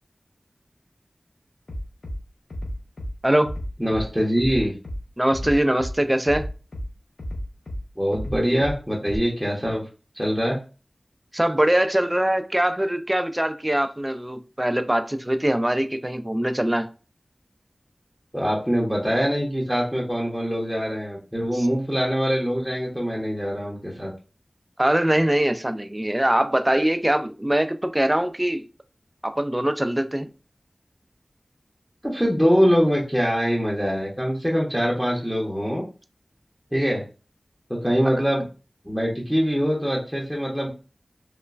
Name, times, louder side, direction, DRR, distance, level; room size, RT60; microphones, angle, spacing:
Bass drum, 1.7-2.2 2.5-3.1 3.4-4.0 4.4-5.0 5.3-5.9 6.2-6.9 7.2-7.8 8.1-8.7 9.1-9.2, equal, 80° left, 0.5 m, -31 dB
voice 1, 3.2-3.5 5.2-6.5 11.3-16.9 21.5-21.7 24.8-28.6 29.2-30.3, right 1 dB, 20° right, 0.3 m, -22 dB
voice 2, 3.8-4.7 8.0-9.9 10.1-10.6 18.3-24.1 32.0-35.8 36.7-37.0 37.7-38.4 38.8-40.7, equal, 5° right, 0.7 m, -23 dB
3.0 x 2.1 x 2.4 m
wide cardioid pair, 40°, 0 cm